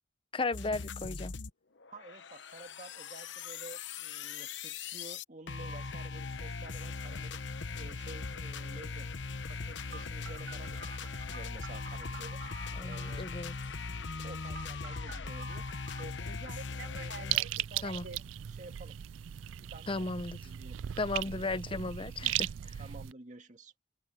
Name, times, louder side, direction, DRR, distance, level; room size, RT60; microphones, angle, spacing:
voice 1, 0.3-1.3 12.8-13.5 17.8-18.1 19.9-20.4 21.0-22.5, left 3 dB, 30° left, 0.7 m, -35 dB
sound 1, 0.5-1.5 1.8-17.4, left 4 dB, 70° left, 0.9 m, -40 dB
voice 2, 1.9-7.4 7.7-9.1 9.5-12.4 12.8-13.3 14.2-15.7 16.0-19.0 19.6-20.1 20.4-20.8 22.8-23.7, right 2 dB, 40° right, 1.9 m, -51 dB
Telephone, 9.9-13.3 14.5-16.0 16.6-18.2, right 4 dB, 70° right, 3.4 m, -48 dB
sound 2, 17.3-23.1, right 12 dB, 90° right, 0.4 m, -37 dB
head